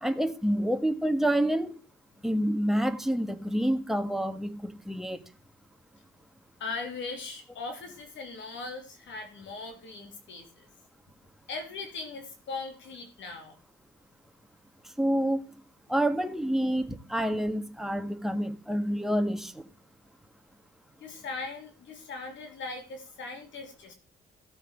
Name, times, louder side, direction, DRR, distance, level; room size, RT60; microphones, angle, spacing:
voice 1, 0.0-1.8 2.2-5.2 15.0-15.4 15.9-19.6, right 1 dB, ahead, 1.6 m, -28 dB
voice 2, 6.6-10.7 11.5-13.6 21.0-23.9, left 3 dB, 70° left, 2.9 m, -39 dB
16.0 x 6.5 x 5.0 m
cardioid pair, 90°, 20 cm